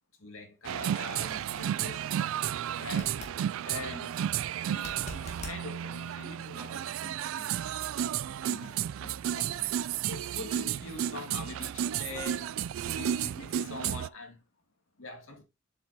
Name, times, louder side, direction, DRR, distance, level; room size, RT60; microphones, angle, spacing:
voice 1, 0.2-2.3 2.8-3.2 3.6-4.2 4.7-7.9 8.4-12.5 12.8-14.4 15.0-15.4, left 3 dB, 75° left, 2.5 m, -44 dB
sound 1, 0.6-14.1, right 10 dB, 75° right, 0.3 m, -33 dB
sound 2, 2.9-3.4 4.7-5.6 8.6-8.7, left 2 dB, 35° left, 2.3 m, -44 dB
7.7 x 6.7 x 2.9 m
head